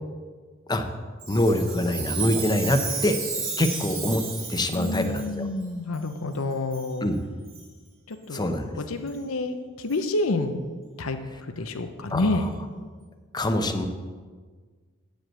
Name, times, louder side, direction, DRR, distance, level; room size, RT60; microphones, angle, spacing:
Chime, 1.2-5.3 5.9-6.0 6.7-6.9 7.5-7.6 8.3-8.4 9.1-9.2 9.9-10.0, right 5 dB, 65° right, 1.9 m, -33 dB
voice 1, 1.3-3.2 3.6-5.5 7.0-7.2 8.3-8.7 12.1-12.5 13.3-13.9, left 1 dB, 20° left, 6 dB, 0.7 m, -25 dB
voice 2, 4.7-7.1 8.1-8.4 8.8-10.6 11.0-11.2 11.6-12.4, left 2 dB, 90° left, 7 dB, 0.7 m, -28 dB
9.5 x 5.2 x 7.5 m, 1.5 s
head